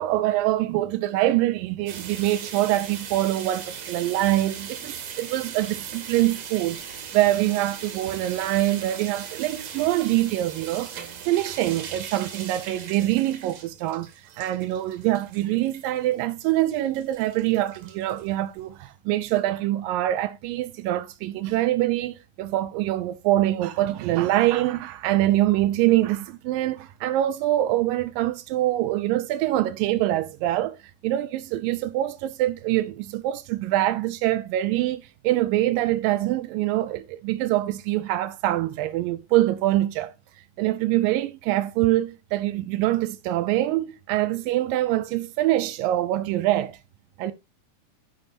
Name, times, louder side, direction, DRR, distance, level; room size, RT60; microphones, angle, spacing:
voice 1, 0.0-6.8 7.1-14.1 14.4-30.8 31.0-40.1 40.6-46.8 47.2-47.3, right 15 dB, 80° right, 2.1 m, -24 dB
sound 1, 1.9-18.7, right 7 dB, 55° right, 2.0 m, -39 dB
14.5 x 5.5 x 2.7 m
omnidirectional pair, 4.3 m